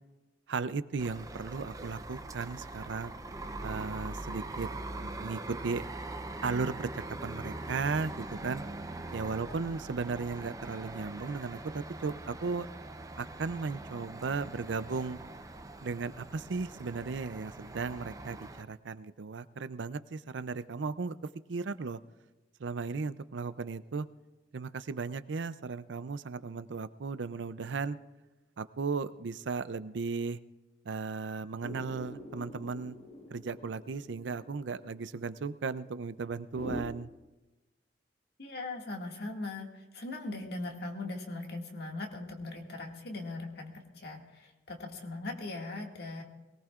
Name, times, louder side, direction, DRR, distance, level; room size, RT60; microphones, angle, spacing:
voice 1, 0.5-3.1 3.6-4.7 5.0-5.8 6.4-8.6 9.1-12.7 13.2-15.2 15.8-21.2 21.5-22.0 22.6-24.1 24.5-28.0 28.6-30.4 30.8-33.0 33.3-37.1, right 4 dB, 75° right, 14 dB, 0.5 m, -36 dB
sound 1, 1.0-18.6, right 2 dB, 20° right, 0.6 m, -42 dB
sound 2, 31.6-36.8, left 1 dB, 35° left, 1.1 m, -46 dB
voice 2, 38.4-46.2, left 2 dB, 60° left, 1 dB, 2.0 m, -40 dB
22.5 x 18.5 x 2.4 m, 1.1 s
head